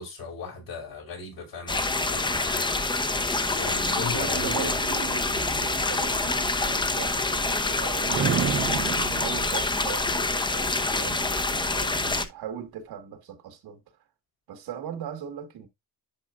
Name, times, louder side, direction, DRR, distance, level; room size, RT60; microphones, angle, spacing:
voice 1, 0.0-3.1 3.6-4.8, left 3 dB, 70° left, 5.6 m, -37 dB
sound 1, 1.7-12.3, left 2 dB, 10° left, 0.7 m, -26 dB
voice 2, 4.1-13.8 14.5-15.7, right 9 dB, 85° right, 1.7 m, -39 dB
sound 2, 4.3-7.8 8.1-10.8, right 8 dB, 35° right, 0.5 m, -33 dB
10.5 x 4.7 x 2.5 m
cardioid pair, 120°, 37 cm